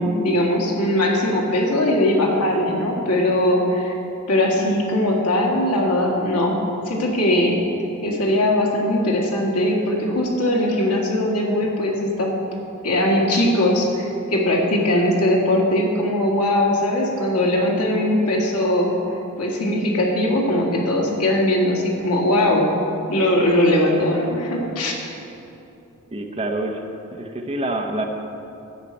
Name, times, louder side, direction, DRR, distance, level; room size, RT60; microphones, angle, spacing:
voice 1, 0.0-3.9 4.3-6.6 6.9-7.6 8.0-12.4 12.8-19.0 19.4-22.7 23.1-25.0, left 1 dB, 80° left, -1 dB, 1.9 m, -20 dB
voice 2, 26.1-26.8 27.1-28.0, right 1 dB, 25° right, 3 dB, 0.9 m, -26 dB
10.5 x 6.5 x 8.4 m, 2.9 s
head